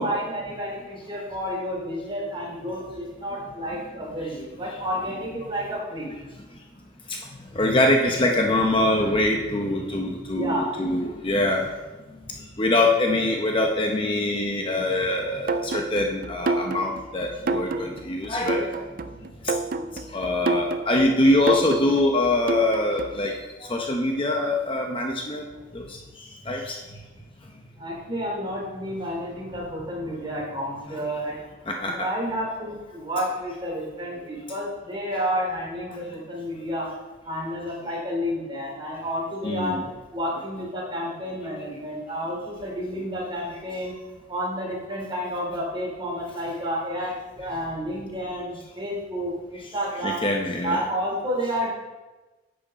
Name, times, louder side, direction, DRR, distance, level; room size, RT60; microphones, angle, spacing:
voice 1, 0.0-6.1 10.3-10.8 12.2-12.4 27.8-31.4 31.8-36.9 37.2-39.8 40.1-43.9 44.3-50.3 50.6-51.7, equal, 25° right, -2 dB, 3.0 m, -30 dB
voice 2, 7.5-11.7 12.6-18.7 20.1-25.5 25.7-26.0 26.5-26.8 31.7-32.1 35.1-35.2 39.4-39.8 50.0-50.9, left 1 dB, 30° left, 1 dB, 0.8 m, -24 dB
sound 1, 15.5-23.3, right 3 dB, 50° right, 0.4 m, -29 dB
11.0 x 7.8 x 4.2 m, 1.2 s
head